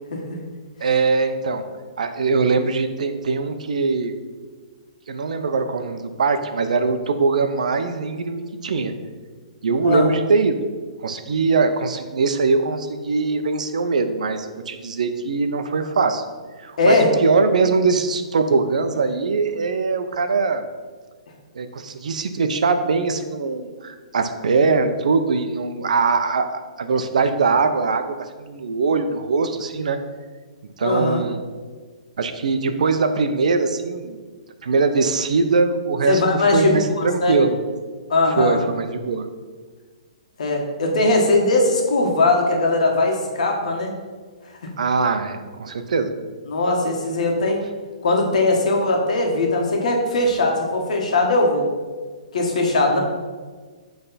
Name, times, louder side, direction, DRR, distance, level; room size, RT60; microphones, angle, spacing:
voice 1, 0.8-1.6 2.0-4.1 5.1-8.9 9.6-10.6 11.0-16.2 16.6-20.6 21.5-26.5 26.8-30.0 30.8-31.4 32.2-34.2 34.6-37.5 38.3-39.3 44.8-46.1, right 4 dB, 80° right, 8 dB, 0.6 m, -21 dB
voice 2, 16.8-17.1 30.8-31.2 36.1-37.3 38.1-38.6 40.4-43.9 44.6-44.7 46.5-47.6 48.0-51.7 52.3-53.0, left 2 dB, 70° left, 1 dB, 1.4 m, -20 dB
7.8 x 3.4 x 4.1 m, 1.5 s
hypercardioid pair, 165°, 4 cm